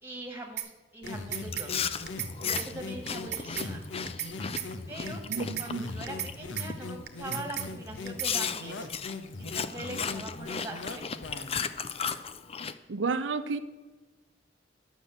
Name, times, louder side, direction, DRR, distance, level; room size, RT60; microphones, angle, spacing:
voice 1, 0.0-1.7 2.4-3.8 4.9-5.2 5.6-8.9 9.4-11.1, right 1 dB, 10° right, 2 dB, 2.1 m, -42 dB
sound 1, 0.6-0.7 1.1-1.7 2.1-2.3 2.6-2.7 3.1-3.7 4.1-4.3 4.6-4.7 5.1-5.7 6.1-6.3 6.6-6.7 7.1-7.7 8.1-8.3, right 12 dB, 60° right, 1.0 m, -35 dB
sound 2, 1.0-11.7, left 3 dB, 90° left, 1.2 m, -40 dB
Chewing mastication, 1.5-6.3 6.7-7.0 7.5-7.6 8.2-12.7, left 6 dB, 30° left, 0.5 m, -35 dB
voice 2, 5.3-5.8 12.9-13.6, right 4 dB, 90° right, 9 dB, 0.6 m, -31 dB
12.0 x 6.2 x 8.7 m, 1.2 s
head